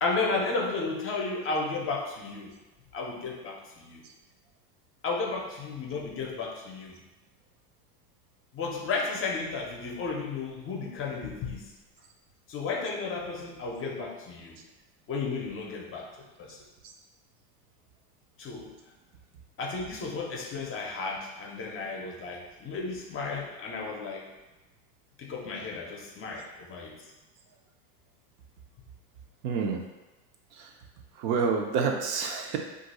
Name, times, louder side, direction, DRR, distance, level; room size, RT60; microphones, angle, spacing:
voice 1, 0.0-2.5 2.9-4.0 5.0-7.0 8.5-11.7 12.5-14.6 15.1-16.1 16.4-16.6 18.4-18.7 19.6-24.3 25.2-26.9, left 4 dB, 30° left, 0 dB, 0.6 m, -33 dB
voice 2, 29.4-29.8 30.6-30.7 31.2-32.6, right 5 dB, 55° right, 3 dB, 0.6 m, -28 dB
2.5 x 2.3 x 4.0 m, 1.1 s
supercardioid pair, 115°, 46 cm